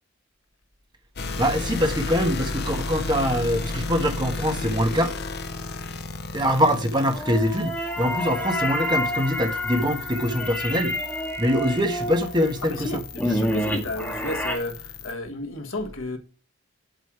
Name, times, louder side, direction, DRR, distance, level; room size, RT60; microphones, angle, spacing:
sound 1, 1.2-15.1, left 3 dB, 50° left, 0.8 m, -34 dB
voice 1, 1.4-5.1 6.3-11.0 11.4-13.0 13.3-13.5, equal, 20° right, 1.3 m, -24 dB
sound 2, 7.1-14.6, left 1 dB, 5° left, 1.8 m, -29 dB
voice 2, 12.6-16.2, left 1 dB, 65° left, 1.5 m, -32 dB
7.9 x 7.5 x 4.8 m
head